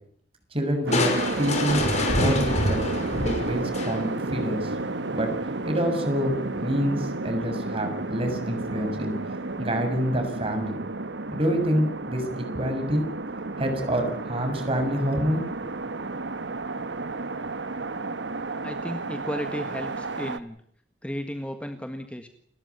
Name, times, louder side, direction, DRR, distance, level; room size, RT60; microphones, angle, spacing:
voice 1, 0.5-1.1 1.4-2.8 3.2-4.7 5.1-5.3 5.6-9.2 9.6-10.8 11.3-13.0 13.6-15.7, equal, 35° right, 6 dB, 7.1 m, -27 dB
Crushing, 0.9-4.3, left 1 dB, 40° left, 5.3 m, -26 dB
sound 1, 0.9-20.4, right 2 dB, 90° right, 1.4 m, -32 dB
voice 2, 18.6-20.6 21.0-22.3, equal, 5° left, 7 dB, 1.7 m, -34 dB
29.5 x 13.5 x 9.6 m, 0.66 s
head